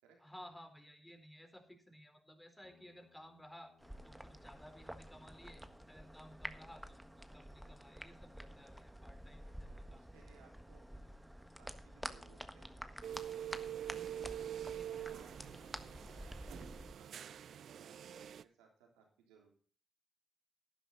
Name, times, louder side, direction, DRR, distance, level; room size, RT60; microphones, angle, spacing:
voice 1, 0.2-3.7 4.0-10.0 14.6-15.7, equal, 10° left, 5 dB, 4.0 m, -57 dB
Guitar, 2.6-10.5, left 6 dB, 70° left, 3.3 m, -74 dB
sound 1, 3.8-16.9, equal, 5° right, 1.5 m, -50 dB
voice 2, 9.4-10.8 11.6-12.8 14.1-15.3 15.6-19.5, right 6 dB, 90° right, 1 dB, 3.4 m, -65 dB
sound 2, 13.0-18.4, right 10 dB, 70° right, 0.4 m, -45 dB
12.0 x 10.5 x 4.1 m, 0.42 s
hypercardioid pair, 40°, 0 cm